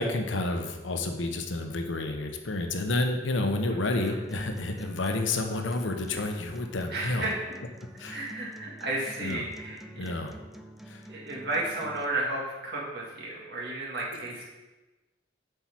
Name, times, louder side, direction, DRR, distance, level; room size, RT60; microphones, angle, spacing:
voice 1, 0.0-7.3 8.0-8.2 9.2-9.4 10.0-10.3 10.9-11.0, left 2 dB, 75° left, 5 dB, 0.9 m, -30 dB
Acoustic guitar, 4.1-12.1, right 1 dB, ahead, 0.3 m, -48 dB
voice 2, 6.9-7.5 8.1-10.3 11.1-14.4, right 2 dB, 55° right, -3 dB, 2.0 m, -33 dB
8.0 x 4.7 x 5.8 m, 1.2 s
head